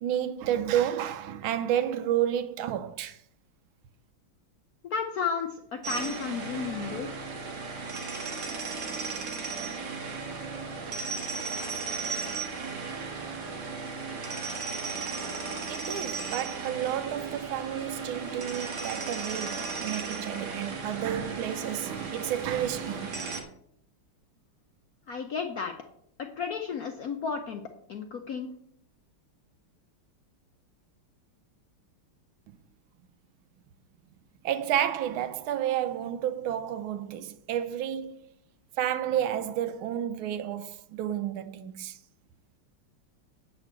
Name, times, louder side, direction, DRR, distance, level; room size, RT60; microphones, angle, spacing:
voice 1, 0.0-3.2 15.7-23.4 34.4-38.2 38.8-42.0, right 11 dB, 75° right, 1.5 m, -31 dB
voice 2, 4.9-7.1 25.1-25.7 26.2-27.6 27.9-28.5, left 6 dB, 70° left, 0.9 m, -33 dB
sound 1, 5.8-23.4, right 4 dB, 55° right, 1.9 m, -35 dB
8.4 x 5.2 x 7.4 m
omnidirectional pair, 2.3 m